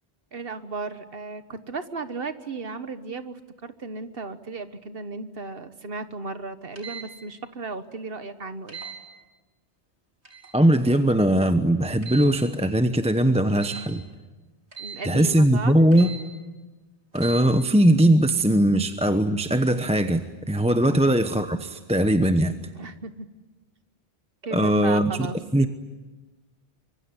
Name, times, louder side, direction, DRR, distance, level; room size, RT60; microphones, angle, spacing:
voice 1, 0.3-8.8 14.8-15.7 20.9-21.1 22.7-23.3 24.4-25.4, right 3 dB, 60° right, 11 dB, 1.5 m, -35 dB
sound 1, 6.8-7.1 8.7-9.0 10.2-10.6 12.0-12.4 13.6-13.9 14.7-15.0 15.9-16.2 17.1-17.4, right 6 dB, 90° right, 4.7 m, -38 dB
voice 2, 10.5-14.0 15.0-16.1 17.1-22.5 24.5-25.3 25.5-25.7, right 1 dB, 5° right, 8 dB, 0.9 m, -20 dB
25.0 x 23.0 x 9.8 m, 1.2 s
omnidirectional pair, 1.1 m